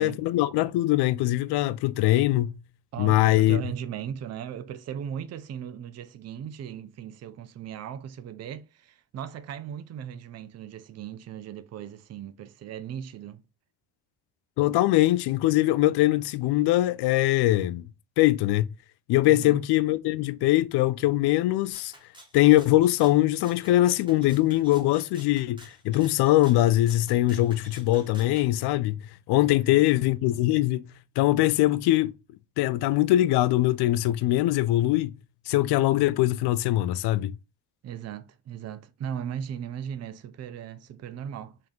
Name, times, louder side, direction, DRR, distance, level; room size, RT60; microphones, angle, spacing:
voice 1, 0.0-2.5 3.0-3.6 14.6-17.9 18.2-18.7 19.1-21.9 22.3-29.0 29.3-30.9 31.2-32.1 32.6-35.2 35.5-37.4, left 16 dB, 75° left, 0.5 m, -22 dB
voice 2, 2.9-13.4 19.3-19.6 29.5-29.9 37.8-41.6, right 9 dB, 40° right, 0.5 m, -37 dB
Rattle (instrument), 21.7-28.5, right 1 dB, 10° right, 1.4 m, -51 dB
3.6 x 2.7 x 3.7 m
cardioid pair, 110°, 40 cm